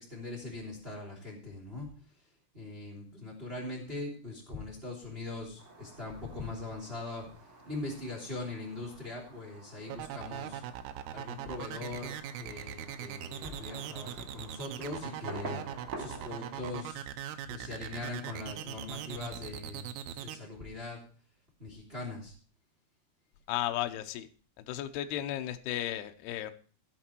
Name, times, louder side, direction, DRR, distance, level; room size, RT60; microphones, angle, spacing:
voice 1, 0.0-10.6 11.1-17.0 17.5-21.0 21.6-22.3, left 2 dB, 15° right, -2 dB, 2.6 m, -41 dB
Fireworks, 5.6-16.5, right 2 dB, 35° right, 2.5 m, -49 dB
sound 1, 9.9-20.4, right 10 dB, 90° right, 3.6 m, -40 dB
sound 2, 13.9-14.4 14.8-15.2 15.7-16.1 16.5-17.0 17.4-18.0 18.4-18.8 19.4-19.5, left 6 dB, 35° left, 3.1 m, -57 dB
voice 2, 23.5-24.3 24.7-26.5, left 13 dB, 90° left, 7 dB, 2.3 m, -34 dB
15.5 x 7.7 x 4.5 m, 0.41 s
omnidirectional pair, 5.8 m